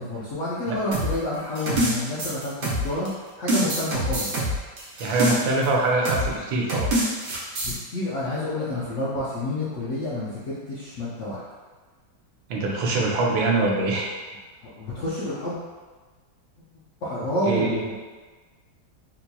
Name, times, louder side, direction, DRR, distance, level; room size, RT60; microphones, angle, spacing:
voice 1, 0.0-3.1 3.4-4.4 7.6-11.4 14.6-15.6 17.0-18.0, left 1 dB, 70° left, -9 dB, 0.7 m, -29 dB
sound 1, 0.9-3.1 3.5-5.7 6.1-6.3 6.7-7.7, right 1 dB, 55° right, 1.2 m, -25 dB
voice 2, 5.0-6.9 12.5-14.1 17.5-17.8, right 2 dB, 85° right, -2 dB, 1.4 m, -23 dB
4.2 x 2.8 x 2.2 m, 1.4 s
omnidirectional pair, 2.1 m